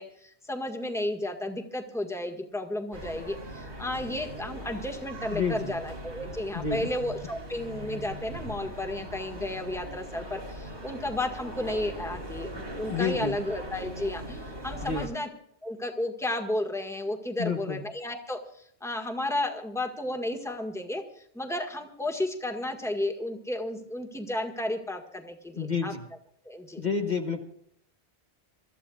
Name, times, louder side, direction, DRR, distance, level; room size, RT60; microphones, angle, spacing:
voice 1, 0.0-15.3 15.6-25.9 26.4-26.8, left 1 dB, 5° left, 2 dB, 1.6 m, -33 dB
sound 1, 2.9-15.1, right 1 dB, 90° right, 3.5 m, -40 dB
voice 2, 5.3-5.8 6.5-6.8 12.9-13.4 14.8-15.1 17.4-17.8 25.6-26.0 26.8-27.4, left 5 dB, 45° left, 2 dB, 1.3 m, -29 dB
27.0 x 14.0 x 2.4 m, 0.69 s
omnidirectional pair, 1.1 m